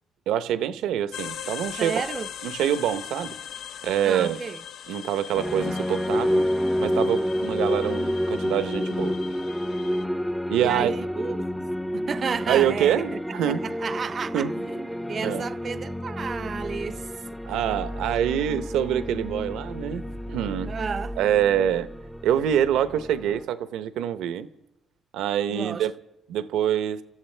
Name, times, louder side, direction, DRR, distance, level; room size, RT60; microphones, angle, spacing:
voice 1, 0.3-2.0 2.4-3.4 3.8-4.4 4.9-6.5 6.8-9.1 10.5-10.9 12.5-13.7 14.3-14.5 15.2-15.5 17.4-20.7 21.2-21.9 22.2-24.5 25.1-25.9 26.3-27.0, right 10 dB, 90° right, 0.8 m, -25 dB
sound 1, 1.1-10.0, left 9 dB, 80° left, 0.6 m, -40 dB
voice 2, 1.8-2.3 4.0-4.6 10.6-13.2 13.5-17.4 20.7-21.2 25.5-25.9, right 6 dB, 45° right, 0.5 m, -32 dB
sound 2, 5.3-23.4, equal, 5° left, 0.6 m, -29 dB
30.0 x 14.0 x 3.3 m
cardioid pair, 90°, 0 cm